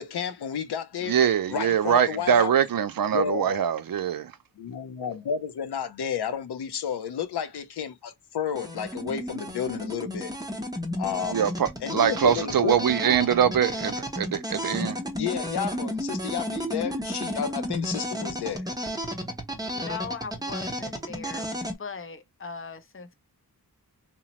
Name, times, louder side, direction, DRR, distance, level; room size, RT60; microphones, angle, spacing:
voice 1, 0.0-1.2 1.5-2.6 3.1-3.6 4.6-10.3 11.0-11.5 11.8-12.8 15.2-18.6, left 7 dB, 90° left, 0.5 m, -31 dB
voice 2, 1.0-4.3 11.3-15.0, right 8 dB, 65° right, 0.5 m, -23 dB
sound 1, 8.5-21.8, equal, 10° right, 0.6 m, -33 dB
voice 3, 19.7-21.4 21.8-23.1, left 5 dB, 35° left, 0.5 m, -39 dB
2.9 x 2.0 x 2.9 m
wide cardioid pair, 75°, 38 cm